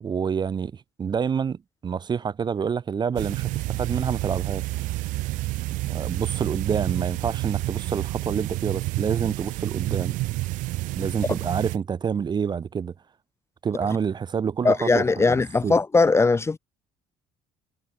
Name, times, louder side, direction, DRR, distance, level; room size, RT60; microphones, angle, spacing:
voice 1, 0.0-4.7 5.8-10.1 11.0-12.9 13.6-15.7, right 6 dB, 35° right, 0.6 m, -28 dB
sound 1, 3.2-11.8, right 20 dB, 75° right, 0.7 m, -29 dB
voice 2, 14.6-16.6, left 3 dB, 20° left, 0.6 m, -20 dB
supercardioid pair, 80°, 13 cm